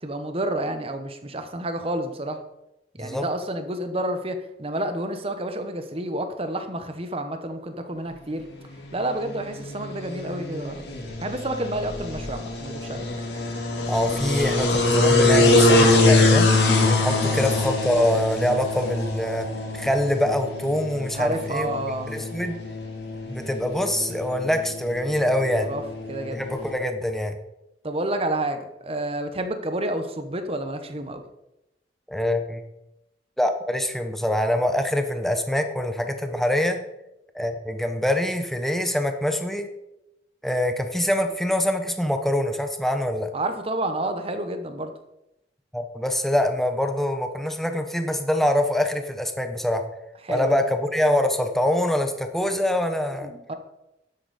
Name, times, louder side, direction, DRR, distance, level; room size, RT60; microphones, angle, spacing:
voice 1, 0.0-2.4 3.0-8.4 8.9-10.8 11.2-13.1 17.2-17.4 21.1-22.1 25.6-25.8 26.1-26.4 27.8-31.2 43.3-44.9 50.2-50.6 53.2-53.5, right 1 dB, 35° right, 7 dB, 1.0 m, -29 dB
sound 1, 8.7-26.7, left 2 dB, 75° left, 2.0 m, -24 dB
voice 2, 13.9-16.5 16.8-19.5 19.7-21.7 22.1-22.6 23.3-25.7 26.3-27.4 32.1-32.6 33.4-36.8 37.3-39.7 40.4-43.3 45.7-49.8 50.3-53.5, left 1 dB, ahead, 6 dB, 0.8 m, -24 dB
9.9 x 8.2 x 4.2 m, 0.89 s
head